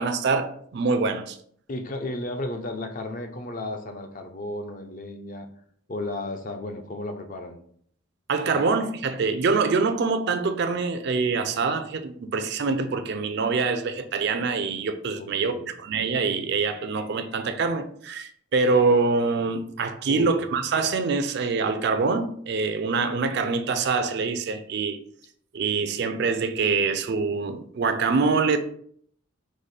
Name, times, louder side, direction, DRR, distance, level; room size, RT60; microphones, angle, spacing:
voice 1, 0.0-1.4 8.3-15.5 15.8-25.0 25.5-28.6, right 4 dB, 50° right, 0.4 m, -25 dB
voice 2, 1.7-5.5 5.9-7.6 8.5-8.6 15.1-15.7 20.1-20.3, left 2 dB, 40° left, 0.5 m, -34 dB
4.8 x 2.1 x 4.1 m
head